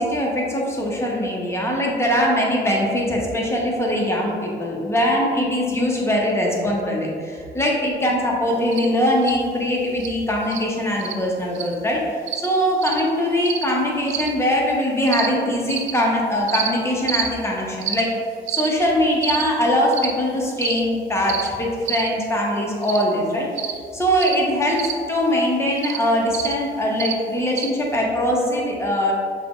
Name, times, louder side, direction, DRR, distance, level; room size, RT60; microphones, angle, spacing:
voice 1, 0.0-12.0 12.4-18.1 18.5-23.5 23.9-29.1, equal, 15° left, -3 dB, 0.9 m, -21 dB
sound 1, 8.7-8.9 9.2-9.4 10.0-10.1 10.5-10.6 11.0-11.1 11.5-11.7 12.3-12.5 12.8-13.0 13.4-13.6 14.1-14.3 15.1-15.3 15.7-15.9 16.5-16.7 17.1-17.3 17.8-18.0 18.5-18.7 19.2-19.4 19.9-20.1 20.6-20.8 21.3-21.5 21.9-22.1 22.8-23.0 23.6-23.8 24.2-24.4 24.8-24.9 25.8-26.0 26.3-26.5 27.0-27.1 27.6-27.7, right 9 dB, 75° right, 0.4 m, -27 dB
5.8 x 2.4 x 3.0 m, 2.1 s
cardioid pair, 90°, 20 cm